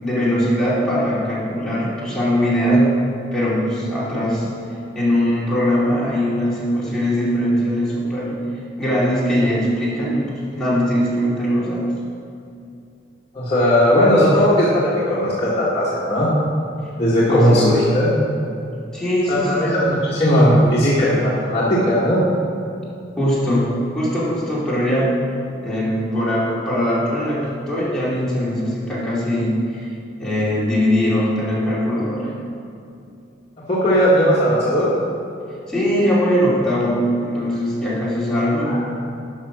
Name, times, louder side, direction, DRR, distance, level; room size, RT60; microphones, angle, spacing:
voice 1, 0.0-2.9 3.3-4.5 4.9-8.3 8.8-11.8 17.3-17.7 18.9-19.8 23.2-25.1 25.6-29.9 30.2-32.3 35.7-38.8, equal, 5° left, -9 dB, 2.7 m, -21 dB
voice 2, 13.3-16.3 17.0-18.1 19.3-22.2 33.7-34.9 38.6-38.8, equal, 30° left, -9 dB, 1.7 m, -17 dB
11.5 x 5.9 x 6.1 m, 2.6 s
head